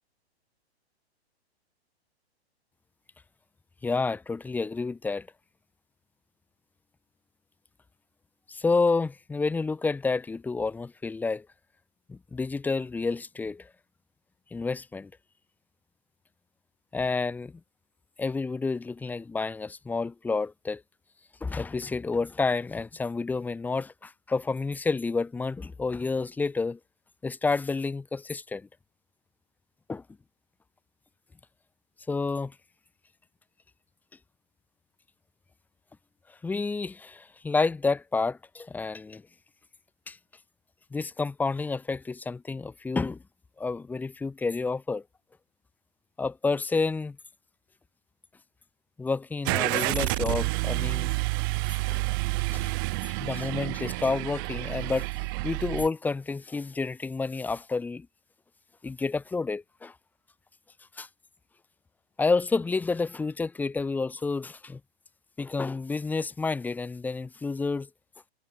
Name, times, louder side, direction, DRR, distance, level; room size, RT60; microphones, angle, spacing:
voice 1, 3.8-5.3 8.5-11.5 12.1-13.7 14.5-15.1 16.9-17.6 18.2-20.8 21.4-26.8 27.2-28.7 29.9-30.0 32.1-32.5 36.4-39.2 40.1-40.2 40.9-43.2 43.6-45.0 46.2-47.2 49.0-51.1 51.9-52.0 52.5-52.7 53.2-55.1 55.4-58.1 58.8-59.9 61.0-61.1 62.2-64.8 65.4-67.9, left 4 dB, 5° left, 0.8 m, -29 dB
Car / Engine starting, 49.4-55.9, right 27 dB, 20° right, 0.4 m, -29 dB
figure-of-eight pair, 110°, 32 cm